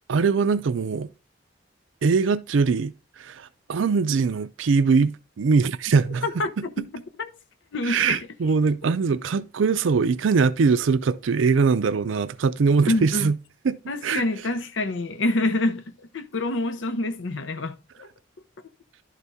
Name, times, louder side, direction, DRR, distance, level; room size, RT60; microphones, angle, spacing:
voice 1, 0.1-1.1 2.0-6.3 7.8-13.4 13.6-13.8 14.0-14.2, right 5 dB, 80° right, 0.4 m, -22 dB
voice 2, 6.2-7.3 7.7-8.2 8.8-8.9 12.9-13.3 13.9-18.1, left 2 dB, 70° left, 0.7 m, -27 dB
11.5 x 4.1 x 3.5 m
head